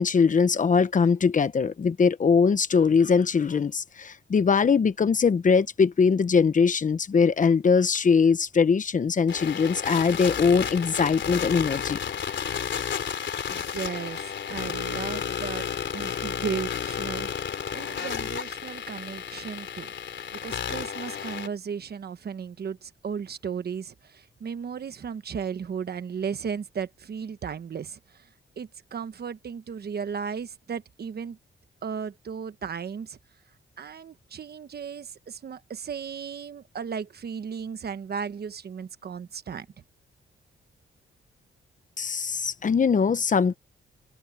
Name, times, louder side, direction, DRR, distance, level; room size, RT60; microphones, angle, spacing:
voice 1, 0.0-12.0 42.0-43.6, left 5 dB, 40° left, 0.9 m, -21 dB
sound 1, 9.3-21.5, left 8 dB, 65° left, 3.5 m, -32 dB
voice 2, 13.5-15.7 15.9-17.3 17.7-19.9 20.4-28.2 28.6-31.4 31.8-33.2 33.8-39.7, right 6 dB, 50° right, 1.2 m, -35 dB
cardioid pair, 115°, 20 cm